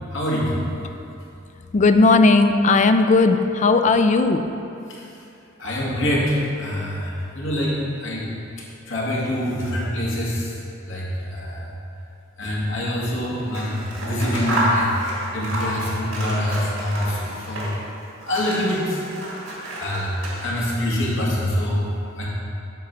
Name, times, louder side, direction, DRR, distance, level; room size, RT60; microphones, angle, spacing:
voice 1, 0.1-0.5 5.6-8.3 8.9-10.5 10.8-11.6 12.4-14.9 15.3-17.7 18.3-19.0 19.8-20.1 20.4-21.9 22.2-22.3, left 1 dB, 70° left, -6 dB, 2.1 m, -25 dB
voice 2, 1.7-4.4, left 3 dB, 35° left, 8 dB, 0.4 m, -16 dB
Scissors, 13.4-17.9 18.2-20.8, right 1 dB, 85° right, 2.0 m, -29 dB
9.0 x 3.9 x 6.7 m, 2.7 s
head